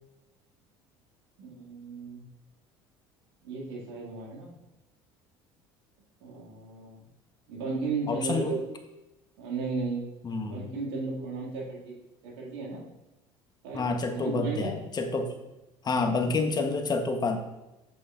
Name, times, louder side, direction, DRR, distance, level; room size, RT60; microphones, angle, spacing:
voice 1, 1.4-2.2 3.4-4.5 6.2-7.0 7.5-8.7 9.4-10.0 10.4-12.0 12.2-12.8 13.6-13.9 14.1-14.8, right 4 dB, 80° right, -3 dB, 2.4 m, -34 dB
voice 2, 8.1-8.6 10.2-10.7 13.7-15.3 15.8-17.4, left 3 dB, 35° left, 5 dB, 1.2 m, -28 dB
8.3 x 6.4 x 2.6 m, 0.97 s
hypercardioid pair, 70°, 13 cm